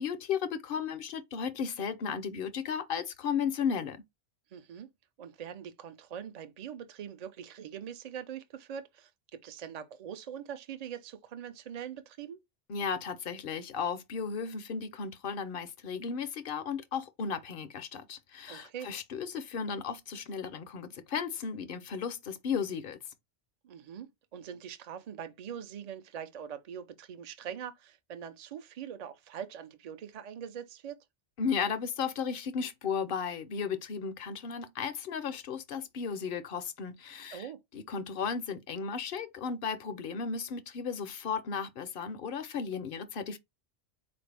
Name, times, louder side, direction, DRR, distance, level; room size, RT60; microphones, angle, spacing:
voice 1, 0.0-4.0 12.7-23.0 31.4-37.5 37.7-43.4, left 6 dB, 60° left, 0.7 m, -35 dB
voice 2, 4.5-4.9 5.2-12.4 18.5-18.9 23.6-31.0 37.3-37.6, right 8 dB, 45° right, 0.6 m, -43 dB
4.3 x 2.5 x 3.2 m
omnidirectional pair, 1.1 m